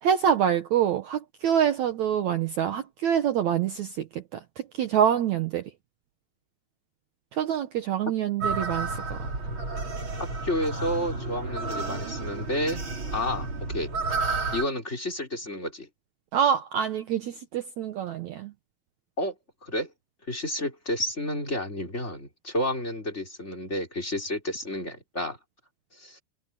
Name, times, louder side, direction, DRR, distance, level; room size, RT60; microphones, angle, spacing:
voice 1, 0.0-5.7 7.3-9.2 16.3-18.5, right 9 dB, 85° right, 1.6 m, -26 dB
sound 1, 8.4-14.7, right 3 dB, 30° right, 4.0 m, -31 dB
voice 2, 10.2-12.8 13.1-13.9 14.5-15.9 19.2-19.3 19.6-19.9 20.3-25.4 26.0-26.2, left 1 dB, 15° left, 3.6 m, -30 dB
omnidirectional pair, 5.0 m